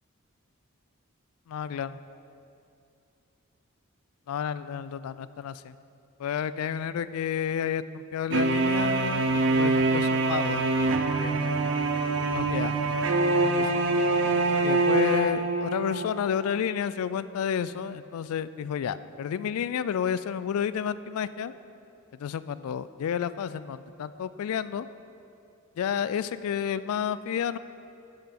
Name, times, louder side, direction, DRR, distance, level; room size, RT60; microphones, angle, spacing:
voice 1, 1.5-2.0 4.3-5.8 6.2-10.6 11.2-11.5 12.3-12.8 13.4-13.9 14.6-21.5 22.1-24.9 25.8-27.6, left 8 dB, 85° left, 16 dB, 0.3 m, -31 dB
sound 1, 8.3-16.1, right 2 dB, 60° right, 0.6 m, -24 dB
8.9 x 5.6 x 5.9 m, 2.7 s
head